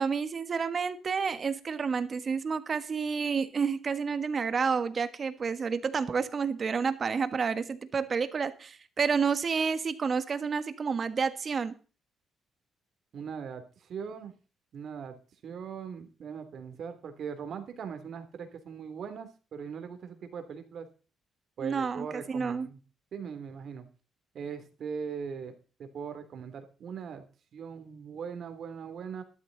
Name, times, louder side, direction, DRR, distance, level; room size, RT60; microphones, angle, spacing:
voice 1, 0.0-11.7 21.6-22.7, right 5 dB, 45° right, 12 dB, 1.5 m, -30 dB
voice 2, 13.1-13.6 13.9-14.3 14.7-15.2 15.4-20.9 21.6-22.8 23.1-23.9 24.3-25.5 25.8-27.2 27.5-29.2, right 6 dB, 60° right, 8 dB, 3.0 m, -40 dB
13.0 x 12.5 x 4.0 m, 0.36 s
cardioid pair, 90°, 0 cm